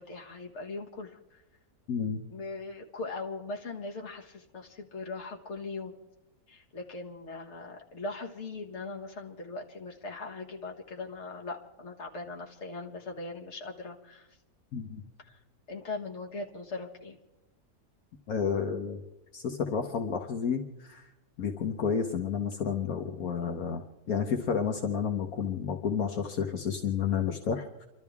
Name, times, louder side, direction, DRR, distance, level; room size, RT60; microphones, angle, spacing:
voice 1, 0.0-1.4 2.3-5.9 6.5-14.4 15.2-15.4 15.7-17.2, left 3 dB, 50° left, 1 dB, 1.8 m, -40 dB
voice 2, 1.9-2.2 14.7-15.0 18.3-19.0 19.3-21.1 21.4-23.8 24.1-27.9, left 7 dB, 70° left, 4 dB, 1.5 m, -31 dB
29.5 x 12.5 x 3.6 m, 1.0 s
omnidirectional pair, 1.6 m